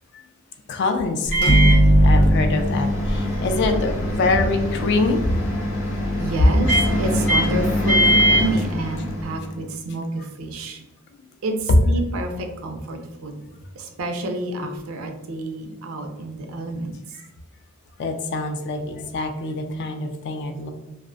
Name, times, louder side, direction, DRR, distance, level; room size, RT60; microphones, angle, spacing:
voice 1, 0.7-5.4 10.2-10.3 17.1-17.3 18.0-20.7, left 3 dB, 55° left, 6 dB, 0.3 m, -25 dB
Microwave oven, 1.3-9.4, equal, 80° left, 0.8 m, -20 dB
voice 2, 6.2-6.7 7.0-10.8 11.4-13.4 13.7-16.9, right 2 dB, 75° right, 4 dB, 0.4 m, -29 dB
2.4 x 2.0 x 2.5 m, 0.97 s
head